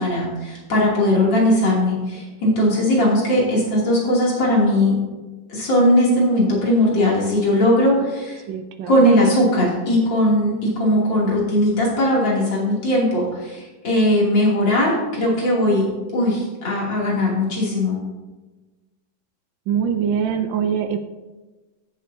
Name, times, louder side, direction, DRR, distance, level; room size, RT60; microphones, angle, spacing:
voice 1, 0.0-4.9 5.5-8.4 8.9-15.9 16.1-18.0, left 1 dB, 75° left, -4 dB, 3.5 m, -19 dB
voice 2, 8.5-9.1 19.7-21.0, right 7 dB, 85° right, 6 dB, 1.4 m, -23 dB
15.5 x 7.4 x 2.7 m, 1.2 s
omnidirectional pair, 2.0 m